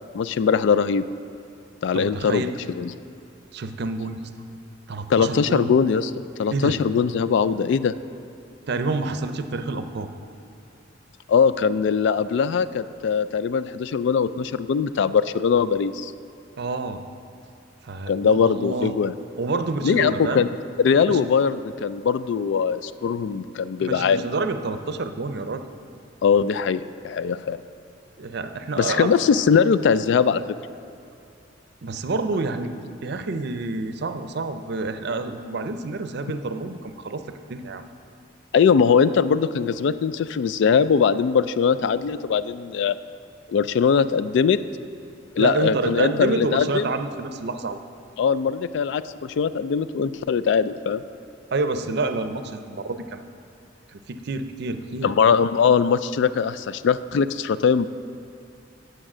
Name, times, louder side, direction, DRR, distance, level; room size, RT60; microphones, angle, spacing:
voice 1, 0.1-1.0 1.8-2.9 5.1-6.1 6.4-7.9 11.3-16.1 18.1-19.1 19.8-20.5 20.8-24.3 26.2-27.6 28.8-30.6 38.5-43.0 43.5-44.6 45.4-46.8 48.2-51.0 55.0-57.9, left 6 dB, 65° left, 15 dB, 0.3 m, -21 dB
voice 2, 1.9-2.5 3.5-4.3 4.9-5.7 6.5-6.8 8.7-10.1 16.6-17.0 17.8-18.9 19.4-20.4 21.0-21.2 23.8-25.6 28.2-29.1 31.8-32.7 33.0-37.2 37.5-37.8 45.4-47.8 51.5-53.2 53.9-55.1, right 3 dB, 60° right, 9 dB, 0.5 m, -28 dB
8.8 x 7.8 x 6.1 m, 2.6 s
head